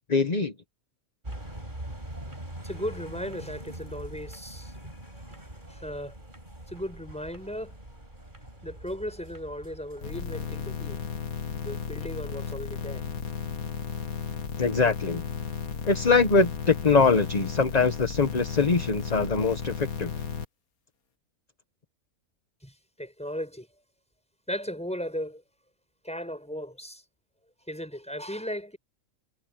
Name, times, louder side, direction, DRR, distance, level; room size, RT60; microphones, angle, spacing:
voice 1, 0.1-0.5 14.6-15.2 15.8-20.1, left 4 dB, 30° left, 1.2 m, -23 dB
sound 1, 1.2-10.2, right 1 dB, 35° right, 5.7 m, -43 dB
voice 2, 2.6-4.9 5.3-5.4 5.7-6.1 6.7-7.8 8.6-11.0 11.6-13.0 22.6-23.7 24.5-25.4 26.0-27.0 27.7-28.8, equal, 5° left, 6.3 m, -36 dB
sound 2, 10.0-20.4, left 6 dB, 90° left, 2.1 m, -34 dB
omnidirectional pair, 1.5 m